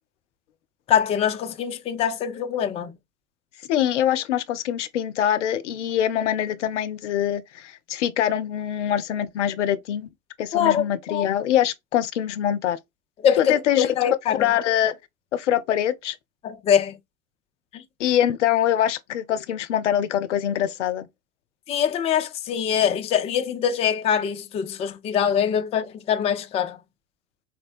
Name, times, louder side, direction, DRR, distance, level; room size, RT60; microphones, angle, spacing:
voice 1, 0.9-2.9 10.5-11.3 13.2-14.5 16.4-17.0 17.7-17.8 21.7-26.8, left 8 dB, 20° left, 0.3 m, -23 dB
voice 2, 3.7-10.1 10.4-12.8 13.4-15.0 15.3-16.2 18.0-21.1, left 10 dB, 75° left, 0.5 m, -24 dB
4.2 x 2.1 x 2.4 m
figure-of-eight pair, 75°, 36 cm